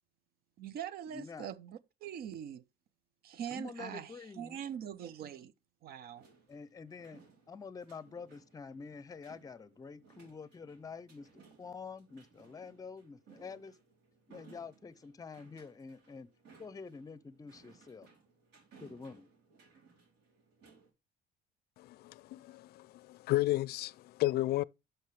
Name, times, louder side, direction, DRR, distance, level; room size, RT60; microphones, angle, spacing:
voice 1, 0.6-2.6 3.2-5.5 5.8-6.2, right 9 dB, 65° right, 0.7 m, -43 dB
voice 2, 1.1-1.5 3.5-4.6 6.5-7.2 7.5-13.8 14.3-16.3 16.6-18.1 18.8-19.3, left 5 dB, 20° left, 0.6 m, -47 dB
sound 1, 6.2-20.9, right 5 dB, 85° right, 4.7 m, -62 dB
voice 3, 21.8-24.6, left 17 dB, 70° left, 0.4 m, -33 dB
11.5 x 6.0 x 3.2 m
cardioid pair, 110°, 17 cm